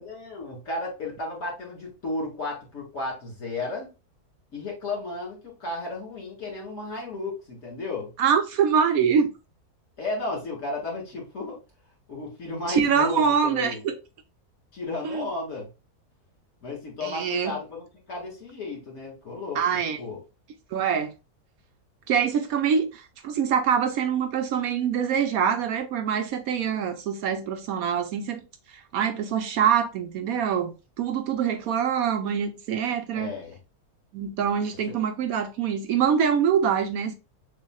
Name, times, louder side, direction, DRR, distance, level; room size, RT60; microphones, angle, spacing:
voice 1, 0.0-3.9 4.5-8.1 10.0-11.6 12.1-13.8 14.7-15.7 16.6-19.6 20.0-20.2 33.1-33.6, left 2 dB, 55° left, 2.5 m, -33 dB
voice 2, 8.2-9.3 12.7-13.9 15.0-15.3 17.0-17.5 19.5-20.0 20.7-21.1 22.1-28.4 28.9-33.3 34.1-37.1, right 7 dB, 70° right, 1.0 m, -24 dB
6.6 x 2.8 x 2.3 m
omnidirectional pair, 1.7 m